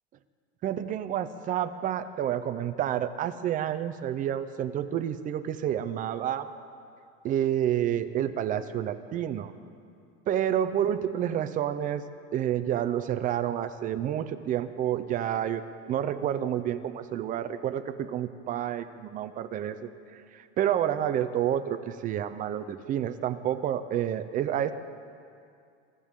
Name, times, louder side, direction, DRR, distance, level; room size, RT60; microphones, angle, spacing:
voice 1, 0.6-6.5 7.2-9.5 10.3-12.0 12.3-15.6 15.9-24.7, right 10 dB, 25° right, 11 dB, 0.5 m, -29 dB
25.5 x 15.0 x 3.7 m, 2.4 s
supercardioid pair, 160°, 33 cm